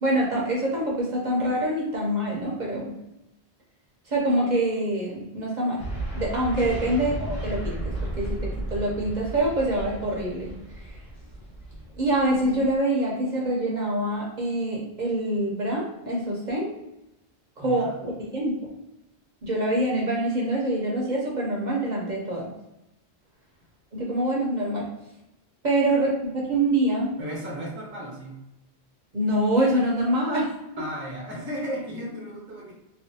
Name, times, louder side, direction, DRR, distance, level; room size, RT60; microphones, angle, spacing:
voice 1, 0.0-2.9 4.1-5.8 6.1-7.8 8.2-10.5 10.8-10.9 12.0-16.7 17.6-18.5 19.4-22.5 23.9-24.9 25.6-27.1 29.1-30.5, right 1 dB, 50° right, -4 dB, 0.7 m, -25 dB
sound 1, 5.8-12.8, right 1 dB, 40° left, 1.7 m, -34 dB
voice 2, 17.6-18.0 27.2-28.4 30.8-32.7, equal, 15° right, -3 dB, 0.5 m, -35 dB
3.3 x 2.0 x 2.6 m, 0.91 s
omnidirectional pair, 1.1 m